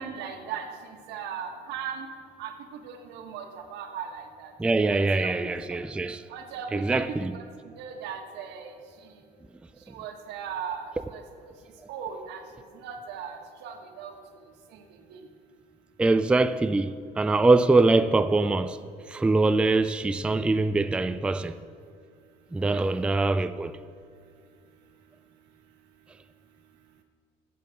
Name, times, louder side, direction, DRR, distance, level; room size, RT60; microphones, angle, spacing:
voice 1, 0.0-2.1 2.4-4.5 4.9-5.8 6.3-7.0 7.3-8.7 9.0-9.2 9.9-11.5 11.9-12.4 12.7-14.1 14.7-14.8 15.1-15.2 22.6-22.9, right 7 dB, 90° right, 1.4 m, -38 dB
voice 2, 4.6-6.2 6.7-7.4 16.0-18.8 19.1-21.6 22.5-23.7, right 3 dB, 5° right, 0.3 m, -23 dB
11.5 x 7.0 x 6.3 m
cardioid pair, 110°, 17 cm